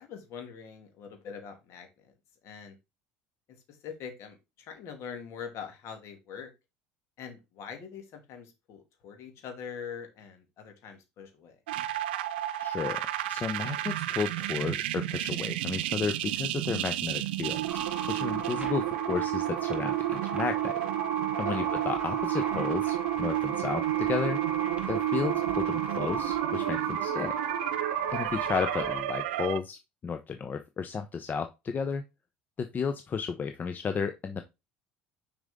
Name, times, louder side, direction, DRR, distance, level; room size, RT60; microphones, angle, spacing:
voice 1, 0.0-2.1 2.4-2.8 3.5-6.5 7.2-11.6 21.4-21.7 28.0-28.4, left 7 dB, 60° left, 5 dB, 2.3 m, -43 dB
sound 1, 11.7-29.6, right 15 dB, 85° right, 0.6 m, -31 dB
voice 2, 12.6-13.0 13.3-17.8 18.1-20.7 21.4-24.4 24.9-27.4 28.1-32.0 32.6-34.4, left 6 dB, 35° left, 8 dB, 0.7 m, -33 dB
sound 2, 17.7-29.0, right 2 dB, 20° right, 3.0 m, -37 dB
6.3 x 5.0 x 3.6 m, 0.24 s
hypercardioid pair, 85°, 5 cm